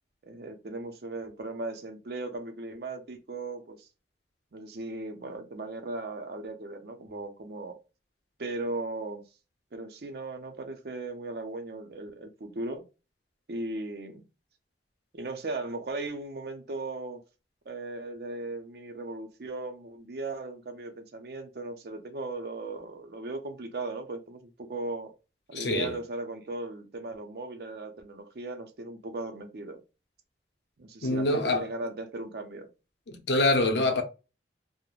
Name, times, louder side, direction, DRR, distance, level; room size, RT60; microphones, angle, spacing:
voice 1, 0.2-3.9 4.5-7.8 8.4-9.2 9.7-12.8 13.5-14.2 15.1-17.2 17.7-25.1 25.5-29.8 30.8-32.7, right 2 dB, 60° right, 0.5 m, -37 dB
voice 2, 25.5-25.9 31.0-31.6 33.1-34.0, left 2 dB, 80° left, 0.6 m, -25 dB
3.1 x 2.0 x 2.3 m
head